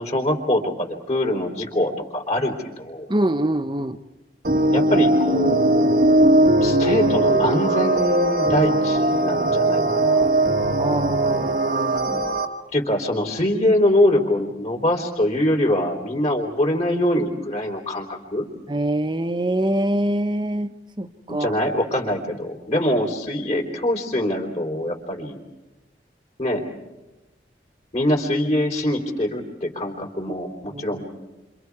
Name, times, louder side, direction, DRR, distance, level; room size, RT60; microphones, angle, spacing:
voice 1, 0.0-3.1 4.7-5.9 6.6-10.3 12.7-18.5 21.3-25.4 26.4-26.6 27.9-31.0, left 1 dB, 40° left, 1 dB, 4.0 m, -23 dB
voice 2, 3.1-4.0 10.8-12.3 18.7-20.7 21.0-21.6 30.7-31.0, right 1 dB, 25° right, 10 dB, 1.0 m, -24 dB
sound 1, 4.4-12.5, right 1 dB, 50° right, 1.7 m, -19 dB
29.5 x 27.0 x 4.8 m, 1.0 s
head